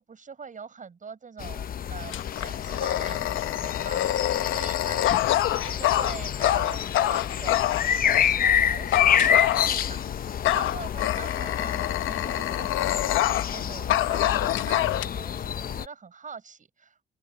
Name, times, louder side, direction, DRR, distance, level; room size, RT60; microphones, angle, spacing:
voice 1, 0.0-17.0, right 5 dB, 40° right, 7.4 m, -43 dB
sound 1, 1.4-15.9, left 8 dB, 45° left, 0.7 m, -28 dB
Dog, 2.1-8.3 8.9-10.0 10.4-13.6 13.9-15.1, left 14 dB, 85° left, 1.0 m, -26 dB
open air
cardioid pair, 90°, 20 cm